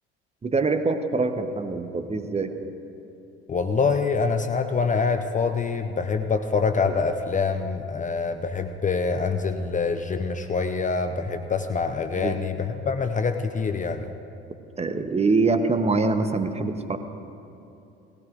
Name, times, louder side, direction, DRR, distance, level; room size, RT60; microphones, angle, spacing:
voice 1, 0.4-2.5 12.2-12.4 14.8-17.0, right 3 dB, 20° right, 7 dB, 0.9 m, -24 dB
voice 2, 3.5-14.1, left 4 dB, 25° left, 7 dB, 0.7 m, -25 dB
19.0 x 15.5 x 2.6 m, 2.9 s
figure-of-eight pair, 55°, 33 cm